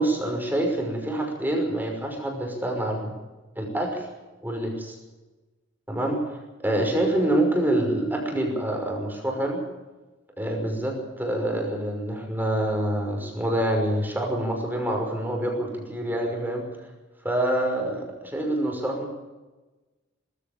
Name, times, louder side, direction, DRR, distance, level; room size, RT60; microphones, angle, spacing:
voice 1, 0.0-3.1 3.6-4.1 4.4-5.0 5.9-9.6 10.4-16.6 17.2-19.1, right 1 dB, 10° right, 1 dB, 5.8 m, -26 dB
20.5 x 15.0 x 8.8 m, 1.2 s
head